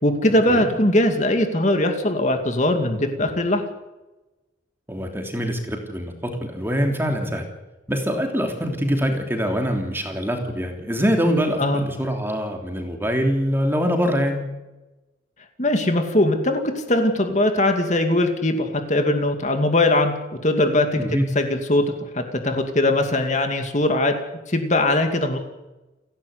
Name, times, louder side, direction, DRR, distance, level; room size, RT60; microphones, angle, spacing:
voice 1, 0.0-3.6 11.6-11.8 15.6-16.6 16.9-20.1 20.4-21.0 21.3-24.1 24.5-25.4, left 1 dB, 40° left, 5 dB, 2.5 m, -20 dB
voice 2, 4.9-7.5 7.9-14.4 21.0-21.3, equal, 10° right, 3 dB, 3.2 m, -24 dB
30.0 x 11.5 x 9.7 m, 1.1 s
head